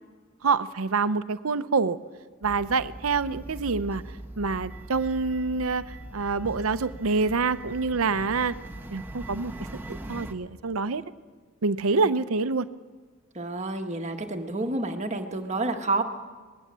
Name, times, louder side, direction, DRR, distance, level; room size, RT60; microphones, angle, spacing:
voice 1, 0.4-2.0 2.4-4.0 4.4-8.5 8.9-9.5 9.9-11.0 11.6-12.7, right 4 dB, 75° right, 13 dB, 0.7 m, -26 dB
sound 1, 2.4-10.3, right 1 dB, 10° right, 1.1 m, -41 dB
voice 2, 13.3-16.0, right 2 dB, 30° right, 4 dB, 1.5 m, -29 dB
25.5 x 19.5 x 7.5 m, 1.5 s
head